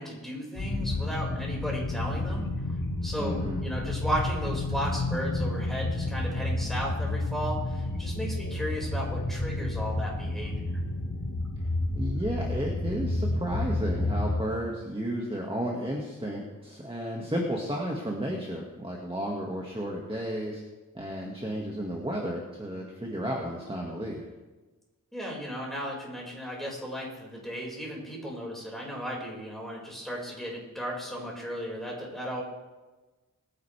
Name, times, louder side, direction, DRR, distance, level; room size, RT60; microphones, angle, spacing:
voice 1, 0.0-2.5 3.0-10.7 25.1-32.4, equal, ahead, -3 dB, 5.5 m, -35 dB
sound 1, 0.6-14.4, left 2 dB, 70° left, 2.1 m, -30 dB
voice 2, 3.2-3.6 11.9-20.6 20.9-24.2, equal, 15° right, -1 dB, 2.0 m, -33 dB
22.5 x 10.5 x 3.5 m, 1.2 s
wide cardioid pair, 55°, 33 cm